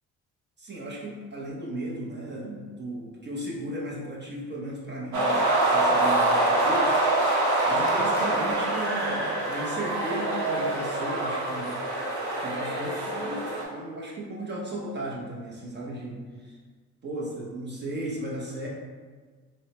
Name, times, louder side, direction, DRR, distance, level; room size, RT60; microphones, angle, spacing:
voice 1, 0.6-6.9 7.6-11.8 12.4-16.6 17.0-18.7, right 1 dB, 35° right, -4 dB, 0.6 m, -35 dB
sound 1, 5.1-13.6, right 2 dB, 70° right, 0.8 m, -25 dB
3.1 x 2.0 x 2.8 m, 1.5 s
cardioid pair, 90°, 30 cm